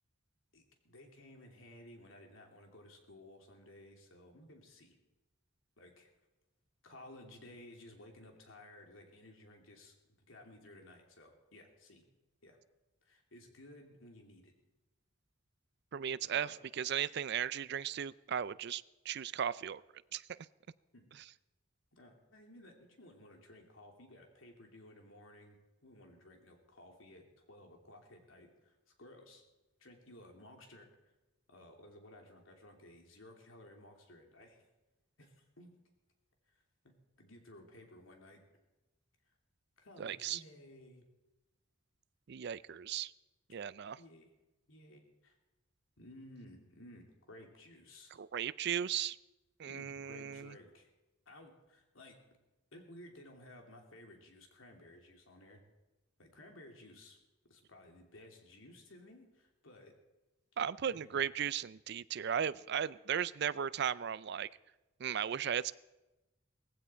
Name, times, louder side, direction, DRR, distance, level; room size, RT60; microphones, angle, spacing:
voice 1, 0.5-4.9 5.8-6.1 6.8-12.0 12.4-12.6 13.0-14.5 16.3-16.5 20.9-21.1 21.9-29.4 29.8-30.9 31.5-34.6 35.2-35.7 36.5-36.6 36.8-38.4 39.8-41.0 44.0-44.3 44.7-45.3 46.0-48.1 49.7-50.9 51.3-52.2 52.7-55.6 56.2-57.2 57.4-59.9 60.8-61.2, left 1 dB, 85° left, 2 dB, 3.0 m, -56 dB
voice 2, 15.9-19.8 20.1-20.2 40.0-40.4 42.3-43.1 43.5-44.0 48.2-49.2 49.6-50.5 60.6-64.5 65.0-65.7, right 8 dB, 55° right, 18 dB, 0.4 m, -36 dB
18.5 x 15.5 x 4.5 m, 1.0 s
head